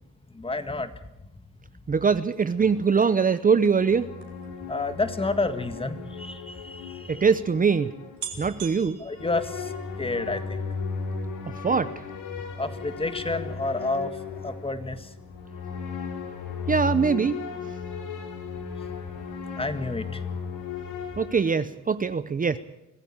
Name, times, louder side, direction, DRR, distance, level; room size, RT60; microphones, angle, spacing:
voice 1, 0.3-0.9 4.7-7.2 9.0-9.7 10.0-10.6 12.6-14.1 14.4-15.1 19.6-20.2, left 2 dB, 20° left, 10 dB, 1.8 m, -30 dB
voice 2, 1.9-4.1 7.1-7.9 8.4-9.0 11.6-12.0 16.7-17.4 21.2-22.6, right 5 dB, 30° right, 13 dB, 0.8 m, -22 dB
sound 1, 2.3-5.9 6.7-6.8 7.0-7.1 7.7-7.8 8.2-10.1 10.5-10.9 11.2-11.3, right 9 dB, 70° right, 4.1 m, -44 dB
sound 2, 2.6-8.5 9.1-21.6, left 5 dB, 85° left, 3.9 m, -36 dB
25.0 x 15.0 x 8.7 m, 0.94 s
cardioid pair, 90°, 30 cm